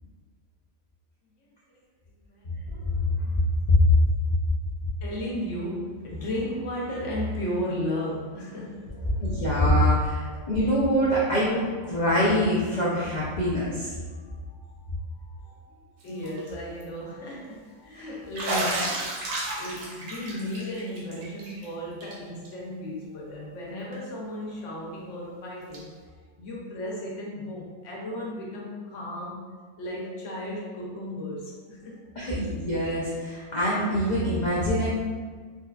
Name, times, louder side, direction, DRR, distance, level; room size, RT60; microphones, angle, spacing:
voice 1, 1.4-1.8 2.2-2.7 3.1-3.2 5.0-9.6 10.4-10.5 14.1-18.9 19.2-32.0 32.4-32.5, left 1 dB, 60° left, -4 dB, 1.0 m, -35 dB
voice 2, 2.7-3.3 3.7-3.8 9.2-13.9 17.9-18.1 18.5-18.7 32.2-34.9, left 1 dB, 80° left, -7 dB, 0.4 m, -24 dB
Bathtub (filling or washing), 16.1-16.5 16.8-16.9 18.4-21.7 22.0-22.1 22.4-22.5 23.9-24.0 25.7-25.8, right 2 dB, 70° right, 1.0 m, -32 dB
4.1 x 2.3 x 2.3 m, 1.5 s
omnidirectional pair, 1.5 m